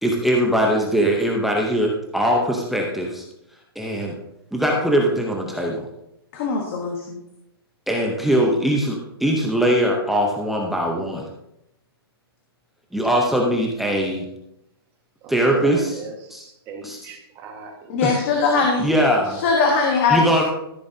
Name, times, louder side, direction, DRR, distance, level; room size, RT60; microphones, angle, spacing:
voice 1, 0.0-3.2 3.8-4.1 4.5-5.8 7.9-11.2 12.9-14.3 15.3-16.0 16.3-16.4 16.8-17.0 18.0-18.1 18.8-19.4 20.1-20.4, equal, ahead, -1 dB, 0.7 m, -21 dB
voice 2, 6.3-7.2 17.9-18.9 19.4-20.4, left 4 dB, 30° left, 2 dB, 1.2 m, -20 dB
voice 3, 15.2-18.0 18.2-18.4 19.6-19.7, right 4 dB, 20° right, 2 dB, 1.5 m, -40 dB
14.0 x 7.6 x 2.7 m, 0.83 s
hypercardioid pair, 170°, 13 cm